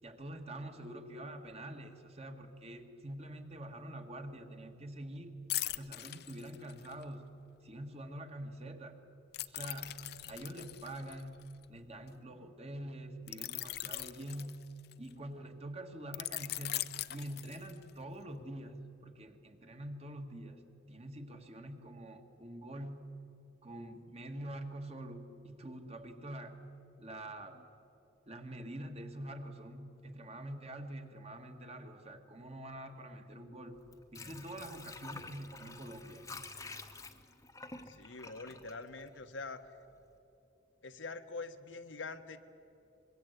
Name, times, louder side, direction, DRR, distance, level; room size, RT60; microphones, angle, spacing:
voice 1, 0.0-5.4 5.7-7.3 7.6-9.0 9.5-11.4 11.7-14.6 15.0-23.1 23.6-26.7 27.0-27.7 28.3-33.8 34.1-36.2, right 1 dB, 35° right, 5 dB, 1.8 m, -46 dB
sound 1, 5.5-7.0 9.3-12.1 13.3-15.1 16.1-18.0 18.4-18.6, left 16 dB, 55° left, 0.5 m, -41 dB
Water / Sink (filling or washing), 33.7-39.6 40.0-40.1, left 3 dB, 15° left, 1.1 m, -49 dB
voice 2, 37.9-39.6 40.8-42.4, left 3 dB, 85° left, 7 dB, 1.4 m, -44 dB
25.0 x 22.5 x 8.2 m, 2.9 s
head